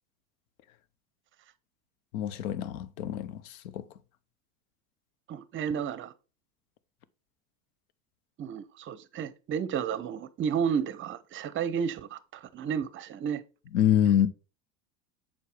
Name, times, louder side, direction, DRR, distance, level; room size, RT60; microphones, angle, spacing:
voice 1, 2.1-3.9 13.7-14.3, left 10 dB, 80° left, 0.7 m, -26 dB
voice 2, 5.3-6.1 8.4-13.4, right 7 dB, 30° right, 0.6 m, -32 dB
7.1 x 4.6 x 3.3 m
hypercardioid pair, 100°, 42 cm